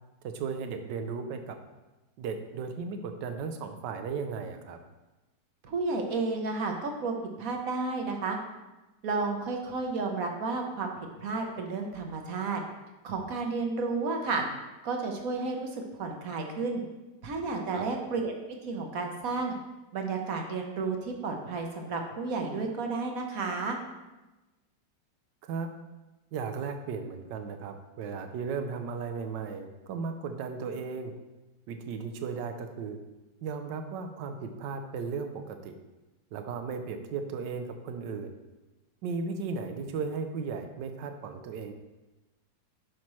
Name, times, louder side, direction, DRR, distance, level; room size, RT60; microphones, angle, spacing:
voice 1, 0.2-1.6 2.2-4.8 17.7-17.8 25.4-25.7 26.3-31.1 31.7-33.0 33.4-35.8 36.3-38.4 39.0-41.7, right 5 dB, 75° right, 7 dB, 1.4 m, -36 dB
voice 2, 5.6-8.4 9.0-10.9 11.2-12.6 13.0-14.4 14.8-16.8 17.2-18.3 18.6-19.6 19.9-23.8, right 3 dB, 55° right, 3 dB, 1.3 m, -32 dB
9.6 x 5.9 x 3.1 m, 1.1 s
omnidirectional pair, 2.0 m